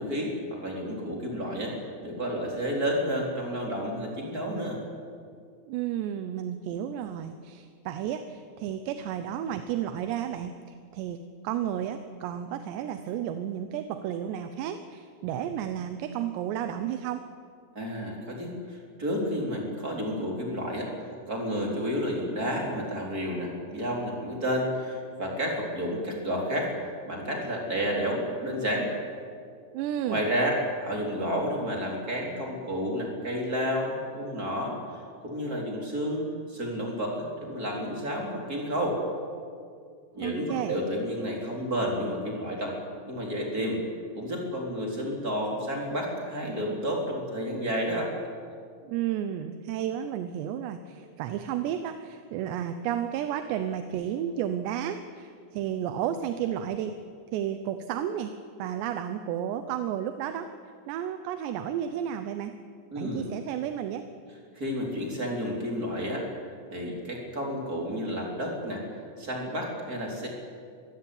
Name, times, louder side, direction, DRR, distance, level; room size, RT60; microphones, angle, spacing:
voice 1, 0.0-1.7 2.0-4.8 17.7-20.9 21.3-26.7 27.1-28.9 30.1-34.7 35.2-36.2 36.5-39.0 40.1-42.8 43.1-43.8 44.1-48.1 62.9-63.3 64.5-66.2 66.7-68.8 69.2-70.3, equal, 20° right, -1 dB, 4.0 m, -31 dB
voice 2, 5.7-17.2 29.7-30.3 40.1-40.8 48.8-57.0 57.3-58.3 58.6-60.5 60.9-62.6 63.0-64.1, right 10 dB, 75° right, 9 dB, 2.9 m, -32 dB
24.0 x 16.0 x 9.7 m, 2.2 s
omnidirectional pair, 5.4 m